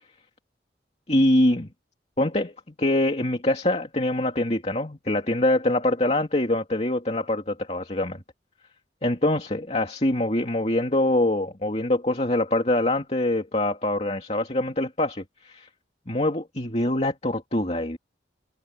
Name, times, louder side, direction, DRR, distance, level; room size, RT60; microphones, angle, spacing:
voice 1, 1.1-1.7 2.2-2.5 2.8-8.2 9.0-15.7 16.1-18.0, left 1 dB, 35° left, 2.6 m, -24 dB
head